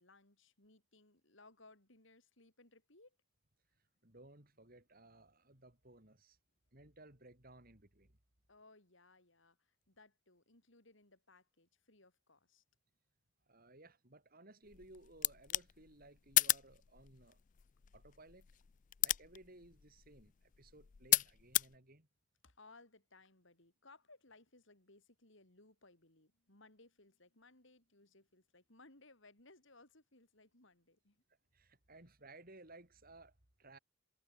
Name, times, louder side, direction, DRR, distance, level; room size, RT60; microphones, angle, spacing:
voice 1, 0.0-3.2 8.5-12.6 20.6-20.7 22.4-31.2 31.9-32.1, left 2 dB, 55° left, 4.0 m, -64 dB
voice 2, 4.0-6.4 6.7-8.2 13.5-17.4 17.9-18.5 19.0-22.1 31.5-33.8, right 2 dB, 40° right, 3.7 m, -59 dB
sound 1, 14.7-21.8, left 15 dB, 35° left, 0.4 m, -37 dB
head